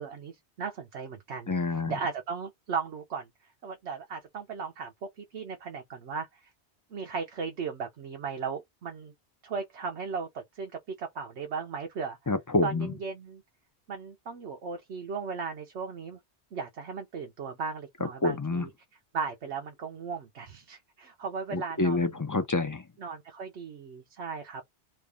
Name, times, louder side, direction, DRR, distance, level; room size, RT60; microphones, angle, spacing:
voice 1, 0.0-3.3 3.6-6.5 6.9-9.1 9.4-10.7 11.0-12.2 12.6-13.4 13.9-16.2 16.5-18.7 19.1-22.2 23.0-24.6, right 5 dB, 90° right, 1.1 m, -36 dB
voice 2, 1.5-1.9 12.3-12.9 18.2-18.6 21.5-22.8, left 3 dB, 30° left, 0.4 m, -27 dB
3.1 x 2.5 x 3.5 m
omnidirectional pair, 1.1 m